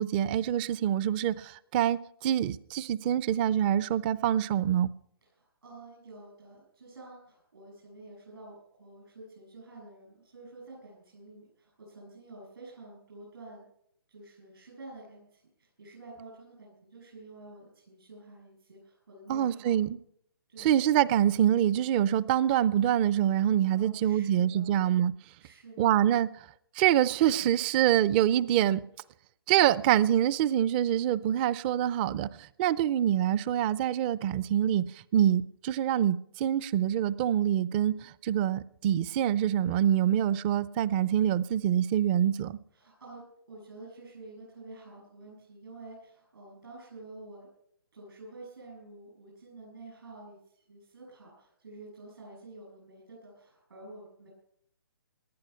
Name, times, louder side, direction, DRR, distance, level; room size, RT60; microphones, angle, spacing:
voice 1, 0.0-4.9 19.3-20.0 20.6-25.1 25.8-26.4 26.8-28.8 29.5-42.6, right 11 dB, 25° right, 0.5 m, -25 dB
voice 2, 5.3-13.7 14.1-19.7 20.5-20.7 23.7-24.8 25.4-26.0 42.7-47.5 47.9-54.3, right 2 dB, 75° right, 7.6 m, -49 dB
19.0 x 11.0 x 5.7 m
hypercardioid pair, 145°, 13 cm